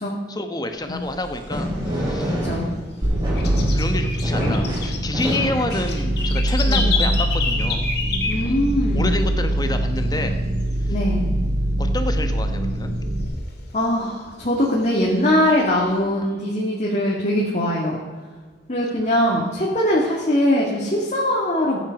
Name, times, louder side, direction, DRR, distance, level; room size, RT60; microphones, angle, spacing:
voice 1, 0.3-2.4 3.7-7.8 8.4-8.6 8.9-10.4 10.9-11.0 11.8-13.0, left 1 dB, 20° left, 7 dB, 1.2 m, -28 dB
sound 1, 0.9-6.5, equal, 25° right, 4.4 m, -27 dB
sound 2, 1.1-2.6 2.9-9.0 9.3-9.4 9.7-10.2 10.5-11.7 12.0-12.1 12.5-12.6 13.0-14.2 14.7-16.0, left 5 dB, 60° left, 2.4 m, -29 dB
sound 3, 3.0-13.3, right 1 dB, 70° right, 1.9 m, -23 dB
voice 2, 8.3-9.1 10.9-11.3 13.7-18.0 18.7-21.8, left 1 dB, 40° left, -3 dB, 2.1 m, -21 dB
15.5 x 9.0 x 5.2 m, 1.5 s
head